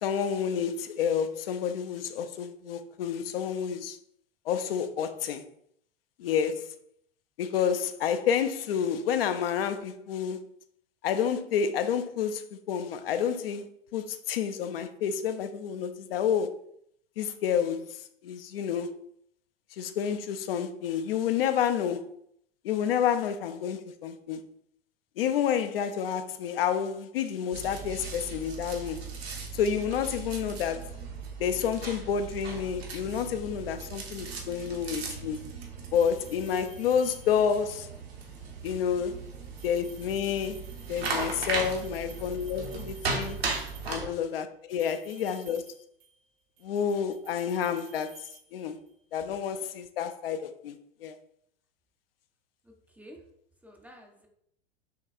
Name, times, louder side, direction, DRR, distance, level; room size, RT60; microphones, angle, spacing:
voice 1, 0.0-4.0 4.5-5.4 6.2-6.7 7.4-10.5 11.0-13.7 13.9-16.6 17.2-19.0 19.7-22.1 22.6-24.5 25.2-29.0 29.5-30.9 31.4-35.5 35.9-37.9 38.6-39.2 39.6-43.4 43.9-45.6 46.6-48.2 48.5-48.8 49.1-50.8 51.0-51.2, left 8 dB, 65° left, 0.5 m, -29 dB
sound 1, 27.5-44.1, right 4 dB, 75° right, 1.1 m, -37 dB
sound 2, 35.9-37.7 39.4-44.2 44.7-46.3 46.6-49.0, right 7 dB, 50° right, 0.9 m, -54 dB
voice 2, 52.6-53.3 53.6-54.3, equal, 5° right, 0.4 m, -51 dB
6.5 x 2.2 x 2.5 m
hypercardioid pair, 95°, 31 cm